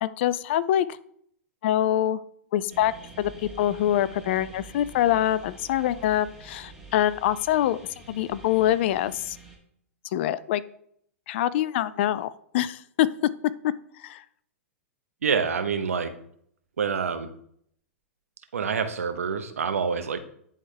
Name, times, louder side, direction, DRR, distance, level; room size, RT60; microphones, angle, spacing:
voice 1, 0.0-0.9 1.6-2.2 2.5-2.9 3.2-3.3 3.6-7.8 8.1-9.4 10.1-10.6 11.3-13.1 14.0-14.2, left 12 dB, 50° left, 17 dB, 0.4 m, -24 dB
sound 1, 2.7-9.6, right 4 dB, 5° right, 1.8 m, -47 dB
voice 2, 15.2-16.1 16.8-17.3 18.5-20.3, right 6 dB, 75° right, 8 dB, 0.8 m, -27 dB
10.5 x 3.6 x 3.3 m, 0.66 s
figure-of-eight pair, 105°, 8 cm